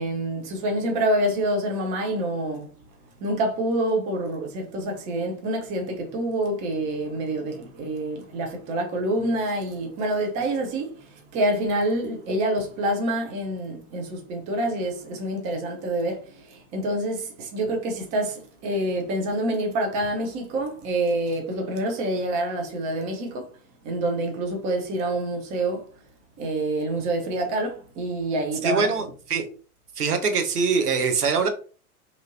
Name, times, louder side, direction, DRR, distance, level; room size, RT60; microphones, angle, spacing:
voice 1, 0.0-2.7 3.2-23.5 23.8-25.8 26.4-28.9, right 1 dB, 15° right, 0.4 m, -27 dB
voice 2, 28.6-29.5 30.0-31.5, right 5 dB, 85° right, 0.7 m, -23 dB
2.8 x 2.5 x 2.6 m
figure-of-eight pair, 100°, 45 cm